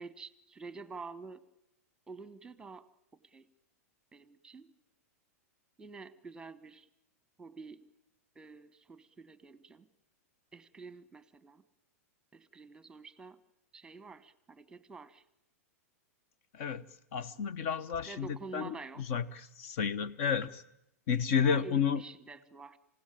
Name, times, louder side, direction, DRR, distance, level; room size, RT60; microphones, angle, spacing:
voice 1, 0.0-1.5 2.1-3.5 4.1-4.8 5.8-6.9 7.4-7.9 8.3-9.9 10.5-11.6 12.3-13.4 13.7-15.2 18.1-19.1 21.4-22.8, right 4 dB, 10° right, 16 dB, 1.2 m, -48 dB
voice 2, 16.5-16.8 17.1-18.7 19.1-20.6 21.1-22.0, left 7 dB, 55° left, 18 dB, 1.1 m, -31 dB
27.5 x 16.5 x 8.8 m, 0.83 s
hypercardioid pair, 105°, 8 cm